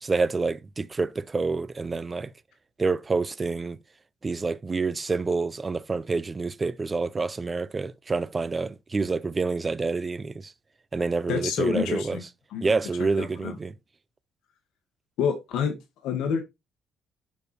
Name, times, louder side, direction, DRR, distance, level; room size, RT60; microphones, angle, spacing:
voice 1, 0.0-2.3 2.8-3.8 4.2-10.5 10.9-12.2 12.6-13.7, right 4 dB, 20° right, 0.4 m, -27 dB
voice 2, 11.3-12.2 12.5-12.8 13.2-13.6 15.2-15.7 16.0-16.4, left 7 dB, 80° left, 1.6 m, -28 dB
6.9 x 4.9 x 4.2 m
cardioid pair, 165°, 0 cm